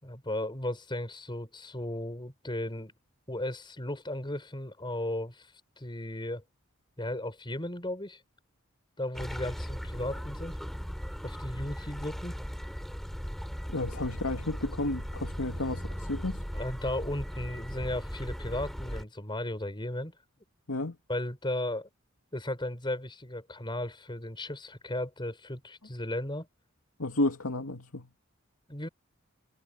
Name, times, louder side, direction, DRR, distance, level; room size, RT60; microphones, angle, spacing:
voice 1, 0.0-2.9 3.3-6.4 7.0-8.2 9.0-10.6 11.2-12.3 16.5-20.1 21.1-21.9 22.3-26.5 28.7-28.9, left 1 dB, 20° left, 4.7 m, -35 dB
sound 1, 9.1-19.0, equal, ahead, 3.6 m, -38 dB
voice 2, 13.7-16.4 20.7-21.0 27.0-28.1, left 2 dB, 85° left, 2.4 m, -32 dB
head